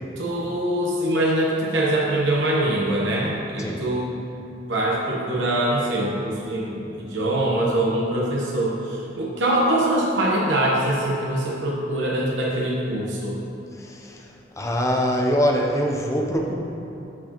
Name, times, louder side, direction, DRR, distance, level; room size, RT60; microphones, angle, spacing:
voice 1, 0.2-4.1 4.7-13.4, right 1 dB, 90° right, -4 dB, 1.0 m, -23 dB
voice 2, 13.8-14.3 14.6-16.5, equal, 15° left, 0 dB, 0.7 m, -23 dB
13.0 x 4.5 x 3.0 m, 2.8 s
head